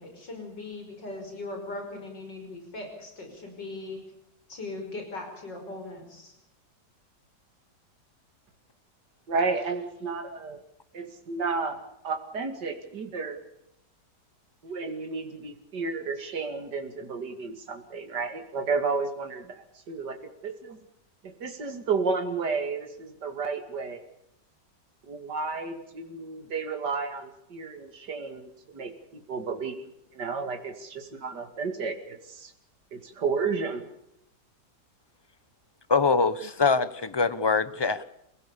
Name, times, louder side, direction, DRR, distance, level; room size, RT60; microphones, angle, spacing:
voice 1, 0.0-4.0 4.5-6.3, left 2 dB, 85° left, 4 dB, 6.3 m, -39 dB
voice 2, 9.3-10.6 10.9-13.4 14.6-20.2 20.4-20.8 21.2-24.0 25.0-32.5 32.9-33.9, right 4 dB, 70° right, 5 dB, 3.0 m, -32 dB
voice 3, 35.9-38.0, left 4 dB, 20° left, 14 dB, 0.9 m, -23 dB
29.5 x 17.0 x 6.9 m, 0.80 s
omnidirectional pair, 1.9 m